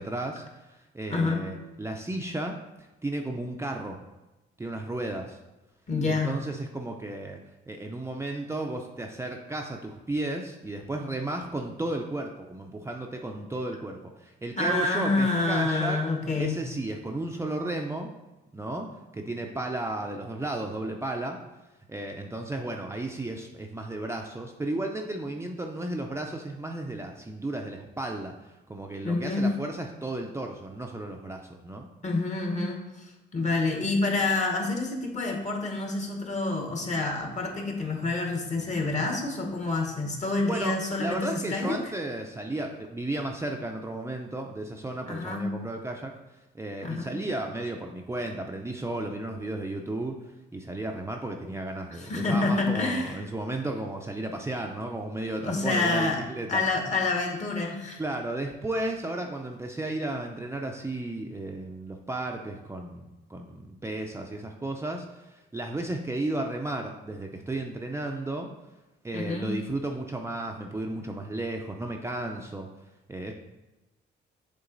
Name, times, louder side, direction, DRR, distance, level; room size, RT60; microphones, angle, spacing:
voice 1, 0.0-4.0 4.6-5.4 6.0-7.4 7.7-16.0 16.4-18.1 18.5-18.9 19.1-21.4 21.9-31.9 40.5-46.1 46.5-50.1 50.5-56.6 58.0-68.5 69.0-72.7 73.1-73.3, right 2 dB, 15° right, 2 dB, 0.5 m, -34 dB
voice 2, 1.1-1.5 5.9-6.3 14.6-16.6 29.0-29.5 32.0-41.8 45.1-45.5 46.8-47.2 51.9-53.2 55.4-56.2 56.5-58.0 69.1-69.5, left 3 dB, 35° left, 2 dB, 1.2 m, -28 dB
7.0 x 3.7 x 3.9 m, 1.0 s
cardioid pair, 90°, 20 cm